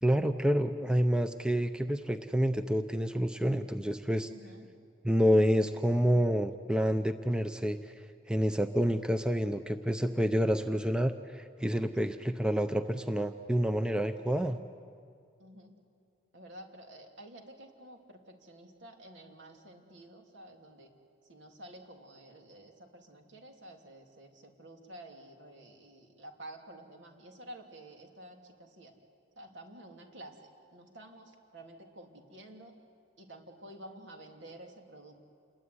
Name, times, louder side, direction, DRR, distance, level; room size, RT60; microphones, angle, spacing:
voice 1, 0.0-4.3 5.0-7.8 8.3-14.6, equal, 5° right, 8 dB, 0.6 m, -28 dB
voice 2, 4.3-4.7 12.0-12.1 15.4-15.7 16.3-20.9 21.3-28.9 29.4-32.8 33.2-35.1, right 1 dB, 70° right, 3 dB, 3.1 m, -51 dB
28.0 x 21.0 x 9.7 m, 2.3 s
head